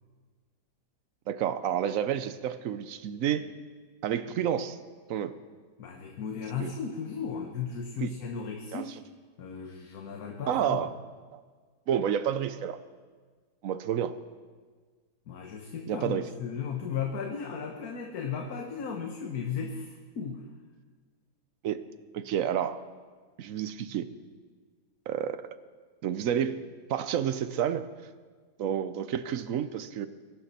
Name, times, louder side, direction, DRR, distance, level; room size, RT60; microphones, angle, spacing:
voice 1, 1.3-3.5 4.0-4.8 5.1-5.4 6.6-6.7 8.0-8.1 8.7-8.9 10.5-10.9 11.3-11.4 11.9-12.8 13.6-14.1 15.9-16.3 21.6-21.8 22.1-22.8 23.4-24.1 25.1-25.4 26.0-26.6 26.9-27.9 28.6-30.1, right 9 dB, 65° right, 13 dB, 1.0 m, -29 dB
voice 2, 5.8-9.0 9.4-10.8 15.3-20.4, left 6 dB, 65° left, 3 dB, 1.5 m, -35 dB
22.0 x 12.0 x 4.2 m, 1.5 s
omnidirectional pair, 1.7 m